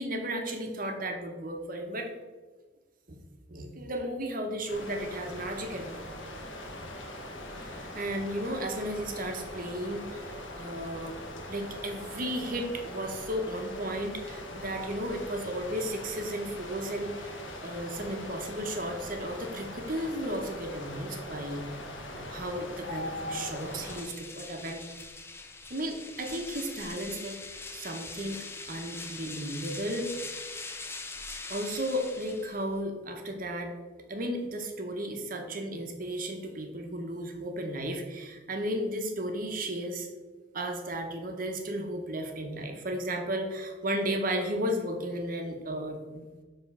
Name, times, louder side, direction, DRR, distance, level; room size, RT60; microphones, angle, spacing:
voice 1, 0.0-2.1 3.1-3.2 3.5-6.0 7.4-11.2 11.5-21.8 22.1-24.8 25.7-27.4 27.7-30.1 31.5-33.7 34.1-40.1 40.5-46.3, right 1 dB, 45° right, 3 dB, 1.0 m, -34 dB
sound 1, 4.7-24.0, left 1 dB, 75° left, 1.1 m, -41 dB
sound 2, 23.2-32.8, left 3 dB, 15° left, 0.5 m, -42 dB
7.2 x 3.7 x 5.5 m, 1.3 s
head